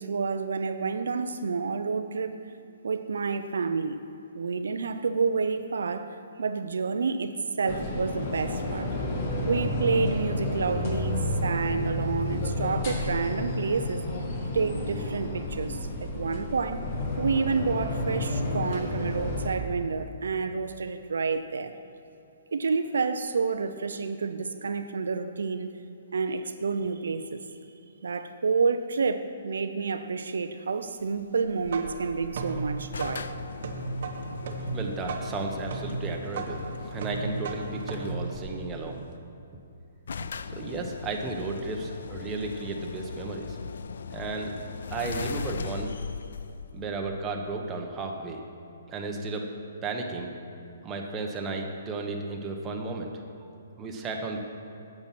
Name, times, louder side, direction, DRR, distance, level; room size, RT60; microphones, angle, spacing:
voice 1, 0.0-2.4 2.8-4.0 4.3-9.0 9.4-14.0 14.5-16.8 17.2-21.7 22.5-25.7 26.1-27.4 28.0-33.3, right 4 dB, 80° right, 9 dB, 0.5 m, -29 dB
sound 1, 7.7-19.5, left 1 dB, 40° left, 1.6 m, -31 dB
sound 2, 31.4-39.1, right 4 dB, 60° right, 1.0 m, -36 dB
sound 3, 32.9-38.4 39.4-39.5 39.7-39.8 40.1-47.6, left 5 dB, 75° left, 0.3 m, -38 dB
voice 2, 34.7-39.0 40.5-43.6 44.1-44.5 44.9-45.9 46.7-48.4 48.9-49.5 49.8-50.3 50.8-53.1 53.8-54.4, right 3 dB, 15° right, 1 dB, 1.0 m, -34 dB
8.8 x 7.3 x 5.9 m, 2.8 s
hypercardioid pair, 150°, 0 cm